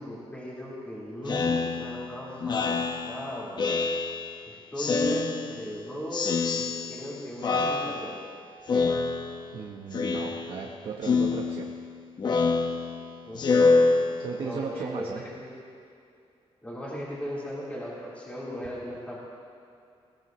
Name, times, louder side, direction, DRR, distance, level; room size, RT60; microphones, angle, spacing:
voice 1, 0.0-3.6 4.4-8.2 13.2-14.0 14.4-15.1 15.4-15.5 16.6-19.2, equal, 15° left, -7 dB, 3.9 m, -37 dB
Speech synthesizer, 1.3-4.4 4.8-5.8 6.1-7.1 7.4-8.3 8.7-9.6 9.9-10.7 11.0-14.6, left 4 dB, 45° left, 0.9 m, -26 dB
voice 2, 9.5-11.7 14.2-15.2, right 6 dB, 65° right, -1 dB, 1.2 m, -36 dB
21.5 x 17.0 x 3.2 m, 2.5 s
wide cardioid pair, 145°, 11 cm